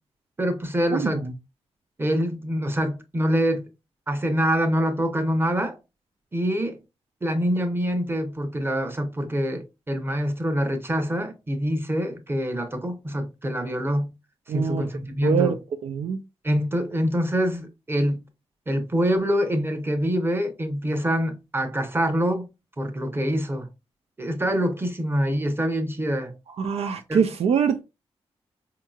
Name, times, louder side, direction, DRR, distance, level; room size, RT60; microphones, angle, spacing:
voice 1, 0.4-1.2 2.0-3.7 4.1-5.8 6.3-6.8 7.2-14.1 14.5-15.6 16.4-18.2 18.7-22.5 22.8-23.7 24.2-26.3 27.1-27.3, equal, 20° right, 0.9 m, -25 dB
voice 2, 0.9-1.3 14.5-14.9 15.2-15.5 15.8-16.2 26.6-27.8, right 7 dB, 80° right, 0.4 m, -24 dB
4.5 x 2.9 x 2.4 m
cardioid pair, 70°, 11 cm